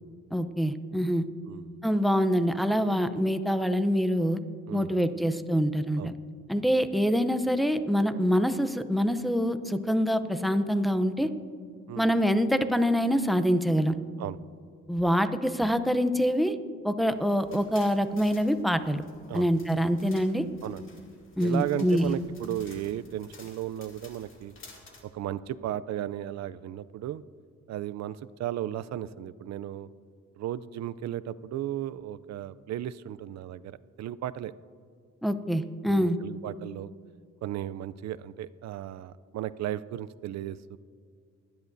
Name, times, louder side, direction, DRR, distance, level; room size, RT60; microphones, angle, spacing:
voice 1, 0.3-1.3 1.8-4.4 4.7-6.1 6.5-11.3 12.0-14.0 14.9-16.5 16.8-19.0 19.3-20.4 21.4-22.1 35.2-36.2, equal, ahead, 10 dB, 0.6 m, -25 dB
voice 2, 1.5-1.8 4.7-4.9 6.0-6.1 11.9-12.1 14.2-14.4 19.3-19.5 20.6-20.9 21.4-24.5 25.1-27.2 27.7-29.9 30.4-34.5 35.9-36.9 37.4-40.8, right 12 dB, 60° right, 16 dB, 0.5 m, -35 dB
sound 1, 17.2-25.0, left 3 dB, 45° left, 2.4 m, -53 dB
22.0 x 10.5 x 2.7 m, 2.1 s
cardioid pair, 90°, 30 cm